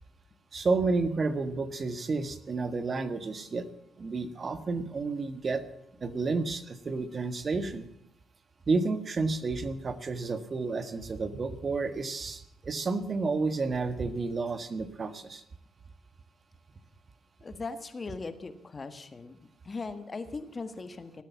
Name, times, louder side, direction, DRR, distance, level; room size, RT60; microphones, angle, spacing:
voice 1, 0.5-3.7 4.0-5.6 6.0-7.9 8.7-15.4, right 3 dB, 40° right, 10 dB, 1.5 m, -31 dB
voice 2, 17.4-19.4 19.6-21.2, left 3 dB, 30° left, 10 dB, 1.6 m, -39 dB
18.5 x 9.2 x 7.1 m, 0.78 s
cardioid pair, 90°, 0 cm